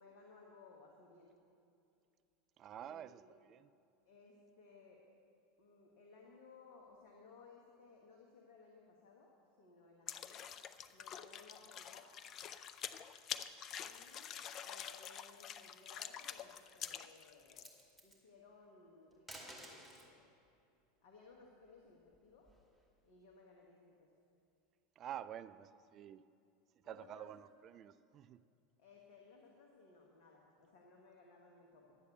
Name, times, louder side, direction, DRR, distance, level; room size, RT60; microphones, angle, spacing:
voice 1, 0.0-1.3 2.8-3.4 4.0-5.0 5.6-10.5 10.9-12.3 13.8-17.7 18.0-20.3 21.0-22.5 23.0-24.1 26.8-27.3 28.8-32.0, left 4 dB, 60° left, 0 dB, 1.4 m, -61 dB
voice 2, 2.6-3.7 25.0-26.2 26.8-28.4, right 10 dB, 40° right, 15 dB, 0.4 m, -49 dB
sound 1, 10.1-17.7, left 9 dB, 40° left, 0.5 m, -47 dB
sound 2, 15.9-16.4 16.8-17.0 17.4-18.2 19.1-20.1 21.6-22.8, right 1 dB, 5° left, 2.4 m, -55 dB
11.5 x 8.3 x 6.8 m, 2.5 s
figure-of-eight pair, 80°, 0 cm